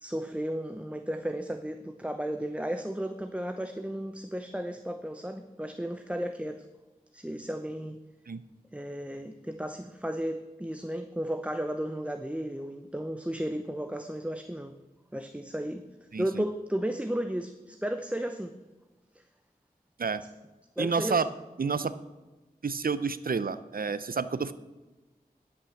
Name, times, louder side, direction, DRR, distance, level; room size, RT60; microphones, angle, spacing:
voice 1, 0.0-6.6 7.1-8.0 8.7-14.7 15.1-15.9 16.2-18.5 19.1-19.2 20.8-21.2, right 1 dB, 10° right, 7 dB, 0.7 m, -34 dB
voice 2, 16.1-16.4 20.0-20.2 20.8-21.3 21.6-22.0 22.6-24.5, right 5 dB, 70° right, 14 dB, 0.6 m, -29 dB
11.5 x 6.1 x 7.0 m, 1.1 s
wide cardioid pair, 45°, 16 cm